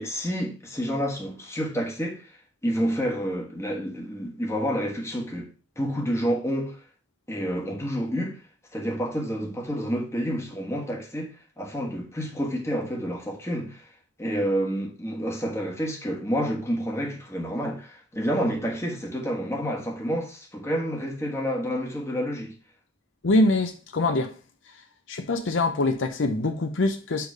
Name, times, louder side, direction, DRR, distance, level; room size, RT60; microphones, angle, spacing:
voice 1, 0.0-2.3 2.6-6.8 7.3-8.4 8.7-13.9 14.2-22.6, equal, 15° left, 1.2 m, -29 dB
voice 2, 23.2-24.3 25.1-27.3, left 2 dB, 70° left, 0.7 m, -24 dB
6.9 x 3.3 x 5.2 m
head